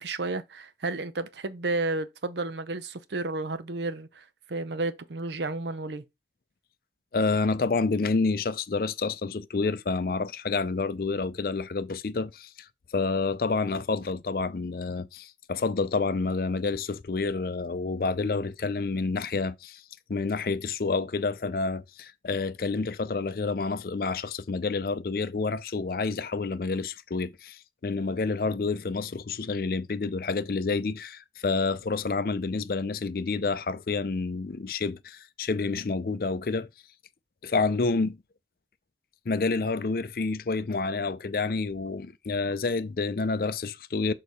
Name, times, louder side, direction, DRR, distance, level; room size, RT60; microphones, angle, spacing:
voice 1, 0.0-6.0, right 2 dB, 80° right, 0.7 m, -32 dB
voice 2, 7.1-12.5 12.9-19.8 20.1-36.7 37.4-38.2 39.3-44.1, left 4 dB, 55° left, 0.5 m, -29 dB
6.5 x 3.9 x 4.1 m
head